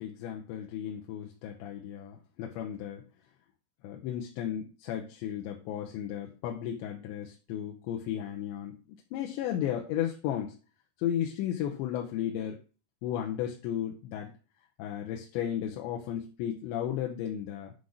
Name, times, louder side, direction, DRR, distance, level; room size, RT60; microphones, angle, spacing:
voice 1, 0.0-3.0 3.8-8.8 9.1-10.6 11.0-12.6 13.0-14.3 14.8-17.7, left 10 dB, 85° left, 1 dB, 3.1 m, -34 dB
10.0 x 4.0 x 6.4 m, 0.35 s
omnidirectional pair, 5.1 m